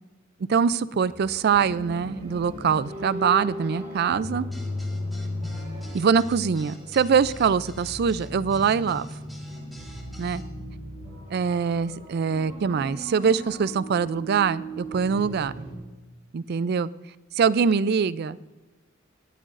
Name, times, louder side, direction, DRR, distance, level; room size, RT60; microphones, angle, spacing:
voice 1, 0.5-4.5 5.9-9.1 10.2-10.4 11.3-15.5 16.3-16.9 17.3-18.4, right 6 dB, 50° right, 17 dB, 0.4 m, -23 dB
sound 1, 1.0-15.7, equal, 35° right, 3.1 m, -37 dB
sound 2, 4.5-10.4, equal, ahead, 2.2 m, -50 dB
19.5 x 12.5 x 2.5 m, 1.2 s
head